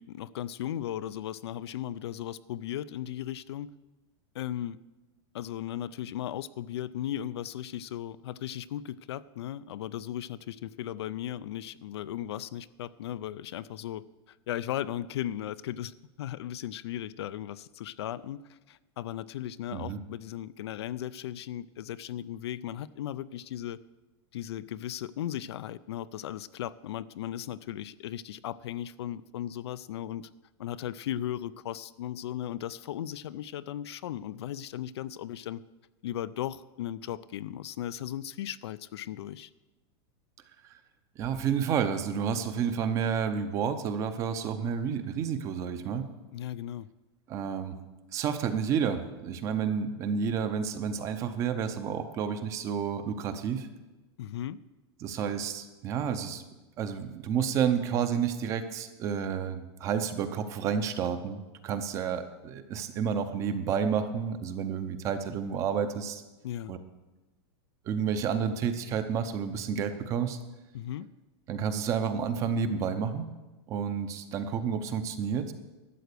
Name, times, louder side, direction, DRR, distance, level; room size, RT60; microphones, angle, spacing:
voice 1, 0.0-3.7 4.3-4.8 5.3-14.0 14.5-23.8 24.3-30.3 30.6-35.6 36.0-39.5 46.3-46.9 54.2-54.6 66.4-66.7 70.7-71.1, left 11 dB, 75° left, 16 dB, 0.5 m, -36 dB
voice 2, 41.2-46.1 47.3-47.8 48.1-53.7 55.0-56.4 56.8-66.2 66.7-66.8 67.8-70.4 71.5-73.3 73.7-75.5, right 7 dB, 20° right, 10 dB, 0.7 m, -30 dB
12.5 x 7.8 x 6.7 m, 1.1 s
supercardioid pair, 170°, 14 cm